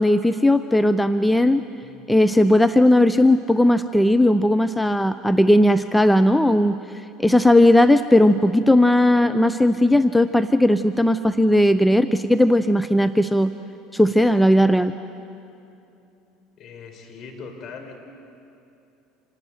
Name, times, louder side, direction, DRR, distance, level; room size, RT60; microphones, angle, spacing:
voice 1, 0.0-1.6 2.1-6.8 7.2-13.5 13.9-14.9, left 1 dB, 5° left, 10 dB, 0.7 m, -17 dB
voice 2, 16.6-17.9, left 5 dB, 50° left, 2 dB, 4.9 m, -40 dB
27.0 x 18.5 x 9.5 m, 2.7 s
hypercardioid pair, 70°, 0 cm